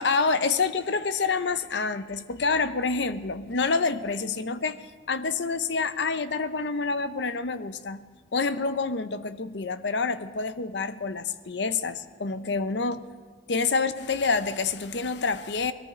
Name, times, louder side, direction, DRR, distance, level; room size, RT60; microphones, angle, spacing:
voice 1, 0.0-8.0 8.3-13.1 13.5-15.7, left 4 dB, 70° left, 12 dB, 0.7 m, -27 dB
20.5 x 13.5 x 4.3 m, 1.4 s
head